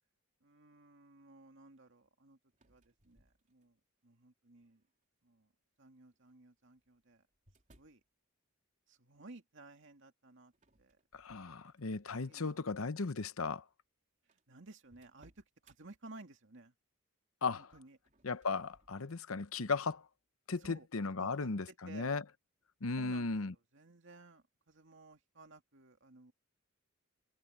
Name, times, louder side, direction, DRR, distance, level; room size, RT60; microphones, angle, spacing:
voice 1, 0.4-2.4 2.6-3.7 4.0-4.8 5.2-5.5 5.8-7.2 7.8-8.0 8.9-10.5 10.8-11.0 12.3-12.6 14.5-16.7 17.5-18.0 20.6-20.9 21.2-22.1 23.0-23.3 23.7-26.3, right 2 dB, 55° right, 2.5 m, -56 dB
sound 1, 2.5-3.9 4.6-5.0 6.1-8.1 10.5-12.1 12.6-12.8 13.6-13.7 13.8-13.9 14.3-15.8 17.9-19.2, right 1 dB, 35° right, 3.9 m, -69 dB
voice 2, 11.1-13.6 17.4-17.7 18.2-20.0 20.5-22.2 22.8-23.5, left 4 dB, 70° left, 0.9 m, -36 dB
head